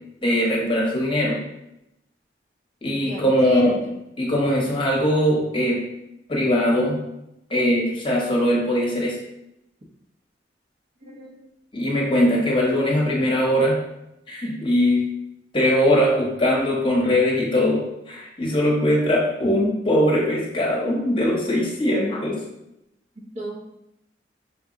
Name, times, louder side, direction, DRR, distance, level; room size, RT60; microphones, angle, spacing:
voice 1, 0.2-1.4 2.8-3.8 4.2-5.9 6.3-7.0 7.5-9.1 11.7-13.8 14.3-15.0 15.5-22.4, equal, 30° left, -3 dB, 0.9 m, -21 dB
voice 2, 2.8-3.9 11.1-11.3 22.1-22.2 23.2-23.6, equal, 40° right, 0 dB, 0.7 m, -34 dB
4.6 x 2.1 x 3.6 m, 0.85 s
head